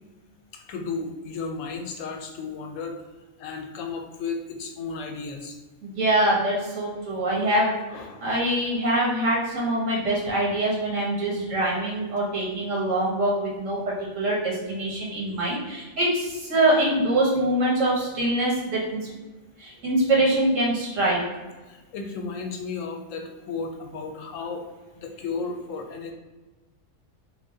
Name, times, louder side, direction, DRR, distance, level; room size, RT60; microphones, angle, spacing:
voice 1, 0.5-3.0 3.4-5.6 7.9-8.3 21.6-24.6 25.0-26.1, left 4 dB, 85° left, 3 dB, 1.0 m, -34 dB
voice 2, 5.8-7.7 8.2-13.8 14.1-19.1 19.6-21.2, right 1 dB, 85° right, -4 dB, 1.5 m, -24 dB
3.2 x 2.2 x 3.7 m, 1.2 s
omnidirectional pair, 1.3 m